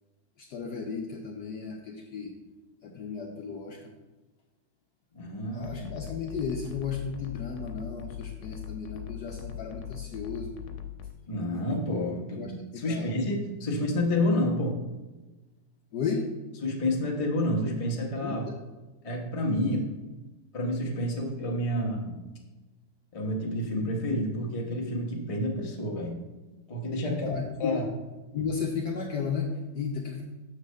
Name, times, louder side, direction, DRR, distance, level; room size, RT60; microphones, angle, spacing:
voice 1, 0.4-2.3 2.8-3.9 5.5-10.5 12.4-13.1 15.9-16.3 18.2-18.4 19.6-19.8 27.0-27.9 28.3-30.2, left 5 dB, 70° left, 0 dB, 1.0 m, -34 dB
voice 2, 5.1-5.9 11.3-14.8 16.6-18.4 19.0-19.8 20.5-22.2 23.1-26.2 26.7-27.9, left 1 dB, 35° left, -2 dB, 0.5 m, -29 dB
sound 1, 5.6-11.1, left 9 dB, 90° left, 1.5 m, -40 dB
7.3 x 3.3 x 6.3 m, 1.2 s
omnidirectional pair, 2.4 m